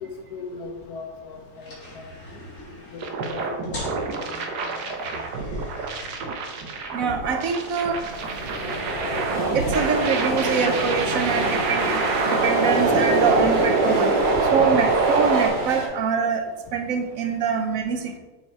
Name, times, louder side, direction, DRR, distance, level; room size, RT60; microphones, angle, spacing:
voice 1, 0.0-1.7 2.9-3.0 3.3-3.7 4.1-4.3, left 4 dB, 75° left, 4 dB, 1.5 m, -37 dB
sound 1, 0.6-15.7, left 1 dB, 55° left, 2.6 m, -45 dB
sound 2, 3.0-15.5, right 3 dB, 85° right, 1.5 m, -25 dB
voice 2, 6.9-8.1 9.5-14.2 14.5-18.2, right 6 dB, 65° right, 7 dB, 1.0 m, -24 dB
sound 3, 7.5-15.9, equal, 30° right, 1.6 m, -28 dB
6.8 x 5.4 x 4.4 m, 1.2 s
omnidirectional pair, 1.7 m